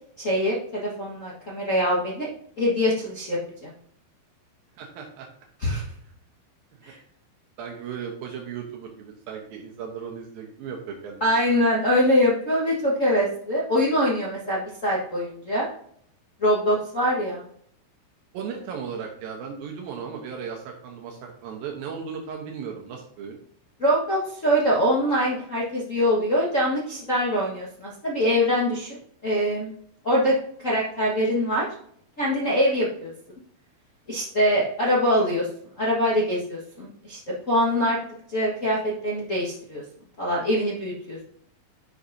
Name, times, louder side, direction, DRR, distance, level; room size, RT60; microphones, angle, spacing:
voice 1, 0.2-2.3 2.6-3.7 5.6-5.8 6.8-7.0 11.2-15.7 16.4-17.4 23.8-29.0 29.2-29.7 30.0-30.3 30.6-31.6 32.2-33.1 34.1-35.5 35.8-37.2 37.5-38.0 38.3-39.8 40.2-41.2, equal, 80° left, -6 dB, 0.7 m, -23 dB
voice 2, 4.8-5.3 6.9-7.0 7.6-11.6 18.3-23.4, right 6 dB, 75° right, 1 dB, 2.8 m, -36 dB
11.0 x 6.3 x 2.7 m, 0.65 s
omnidirectional pair, 4.3 m